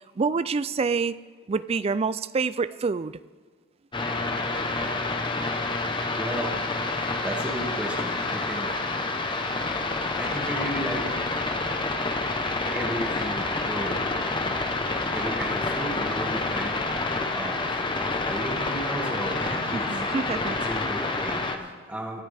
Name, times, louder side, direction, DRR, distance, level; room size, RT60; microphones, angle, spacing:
voice 1, 0.2-1.2 1.5-3.1 19.7-20.6, right 4 dB, 30° right, 16 dB, 0.3 m, -27 dB
sound 1, 3.9-21.6, left 3 dB, 20° left, 0.9 m, -28 dB
voice 2, 6.2-6.5 7.0-8.8 10.2-11.1 12.7-14.0 15.1-16.8 17.3-20.0 20.5-22.2, equal, 5° right, -2 dB, 2.2 m, -34 dB
25.0 x 9.7 x 3.5 m, 1.5 s
head